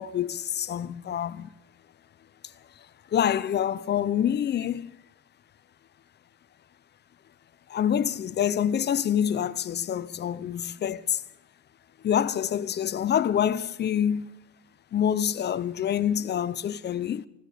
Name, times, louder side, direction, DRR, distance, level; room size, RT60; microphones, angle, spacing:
voice 1, 0.0-1.5 3.1-5.0 7.7-11.2 12.0-14.3 14.9-17.2, left 9 dB, 30° left, 0.5 m, -26 dB
19.0 x 15.0 x 5.0 m
cardioid pair, 150°, 33 cm